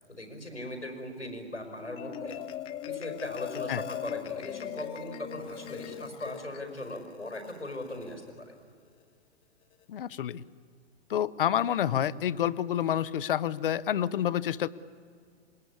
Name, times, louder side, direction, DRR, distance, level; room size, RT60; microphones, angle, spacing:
voice 1, 0.1-2.4 2.9-8.6, left 1 dB, 90° left, 6 dB, 5.3 m, -39 dB
Marimba xylophone, 1.7-8.3, left 11 dB, 15° left, 0.7 m, -40 dB
voice 2, 9.9-10.4 11.1-14.7, left 10 dB, 50° left, 18 dB, 0.9 m, -28 dB
26.0 x 21.5 x 9.8 m, 2.1 s
figure-of-eight pair, 115°, 34 cm